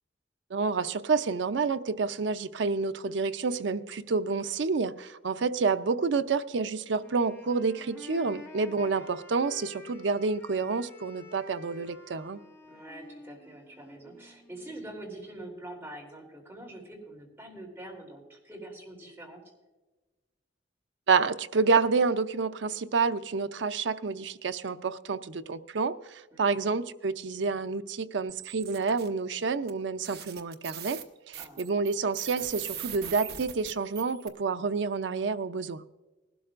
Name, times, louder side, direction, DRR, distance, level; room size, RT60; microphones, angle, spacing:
voice 1, 0.5-12.4 21.1-31.0 31.3-35.8, right 4 dB, 80° right, 0.5 m, -29 dB
Wind instrument woodwind instrument, 7.0-14.8, left 2 dB, 15° left, 1.8 m, -49 dB
voice 2, 8.7-9.1 12.6-19.4 26.3-26.7 31.4-31.7, right 1 dB, 10° right, 3.2 m, -45 dB
sound 1, 28.3-29.1 29.7-29.8 30.0-34.3, right 10 dB, 60° right, 1.0 m, -41 dB
19.5 x 12.5 x 2.5 m
head